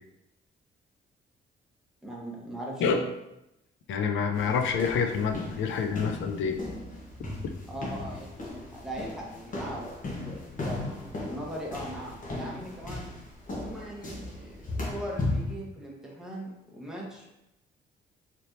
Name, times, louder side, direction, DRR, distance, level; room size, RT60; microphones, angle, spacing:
voice 1, 2.0-3.1 7.7-13.1 13.5-17.3, right 1 dB, 5° right, -4 dB, 1.2 m, -40 dB
voice 2, 3.9-6.6, left 6 dB, 75° left, 5 dB, 0.5 m, -27 dB
sound 1, 4.3-15.5, left 2 dB, 40° left, 1.3 m, -36 dB
4.0 x 3.3 x 2.7 m, 0.88 s
cardioid pair, 90°, 20 cm